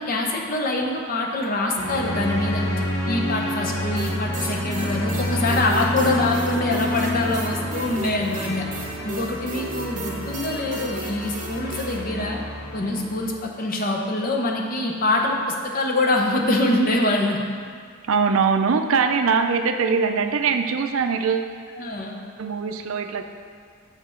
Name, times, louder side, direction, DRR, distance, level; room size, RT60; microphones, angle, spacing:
voice 1, 0.0-2.7 3.1-8.7 9.0-12.4 12.7-17.4 21.8-22.2, left 2 dB, 40° left, 1 dB, 0.7 m, -24 dB
sound 1, 1.8-13.4, left 1 dB, 80° left, 1.4 m, -28 dB
sound 2, 4.0-12.0, right 2 dB, 35° right, 0.9 m, -35 dB
voice 2, 18.1-21.5 22.4-23.2, right 5 dB, 70° right, 7 dB, 0.4 m, -22 dB
6.6 x 5.9 x 4.4 m, 2.2 s
head